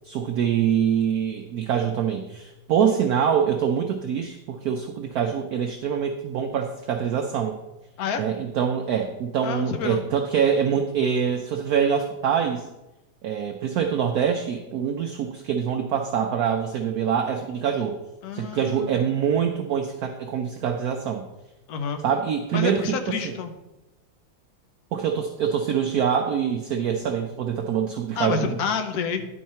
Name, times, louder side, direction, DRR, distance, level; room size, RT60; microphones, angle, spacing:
voice 1, 0.0-7.6 8.2-12.7 13.2-18.0 18.3-21.2 22.0-23.4 24.9-28.6, right 8 dB, 70° right, 5 dB, 0.9 m, -25 dB
voice 2, 9.4-10.0 18.2-19.0 21.7-22.0 22.5-23.5 28.2-29.3, left 6 dB, 60° left, 7 dB, 1.1 m, -28 dB
10.5 x 4.6 x 4.3 m, 1.0 s
omnidirectional pair, 2.1 m